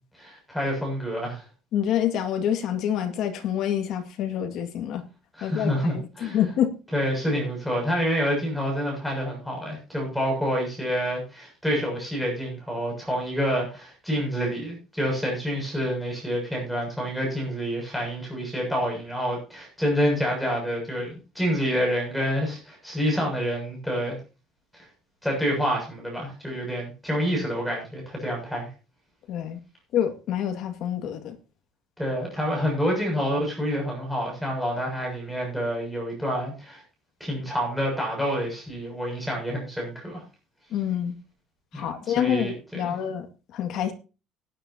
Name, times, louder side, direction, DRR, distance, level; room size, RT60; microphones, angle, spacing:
voice 1, 0.2-1.4 5.4-6.4 6.9-24.2 24.7-24.9 25.2-28.7 32.0-36.8 37.2-40.2 41.7-42.9, equal, ahead, 0 dB, 7.1 m, -28 dB
voice 2, 1.7-5.0 5.4-6.7 29.3-29.6 29.9-31.4 40.7-41.2 41.7-43.3 43.5-43.9, left 10 dB, 50° left, 7 dB, 2.0 m, -27 dB
18.5 x 10.0 x 2.8 m, 0.32 s
cardioid pair, 170°, 0 cm